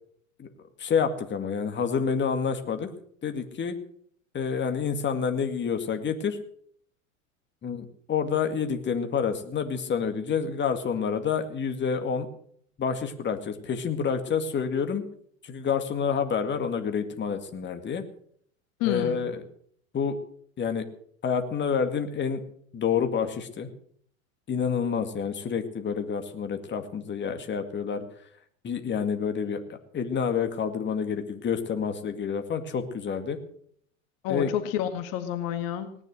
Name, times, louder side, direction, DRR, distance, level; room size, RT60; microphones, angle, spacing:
voice 1, 0.8-2.9 3.2-3.8 4.3-6.4 7.6-12.3 12.8-15.0 15.4-18.0 18.8-19.4 19.9-20.2 20.6-20.8 21.2-22.4 22.7-23.7 24.5-28.0 28.6-29.6 29.9-33.4 34.3-34.5, left 6 dB, 25° left, 7 dB, 2.2 m, -28 dB
voice 2, 18.8-19.2 34.2-36.0, left 11 dB, 55° left, 8 dB, 1.9 m, -29 dB
18.5 x 11.0 x 6.4 m, 0.62 s
hypercardioid pair, 90°, 41 cm